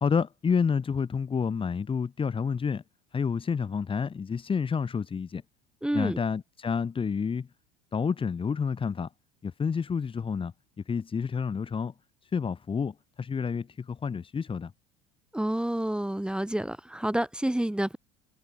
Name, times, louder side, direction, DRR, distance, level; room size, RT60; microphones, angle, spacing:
voice 1, 0.0-2.8 3.1-5.4 5.9-7.5 7.9-9.1 9.4-10.5 10.9-11.9 12.2-14.7, left 6 dB, 25° left, 2.6 m, -29 dB
voice 2, 5.8-6.2 15.3-18.0, right 1 dB, 5° right, 3.3 m, -29 dB
figure-of-eight pair, 65°, 21 cm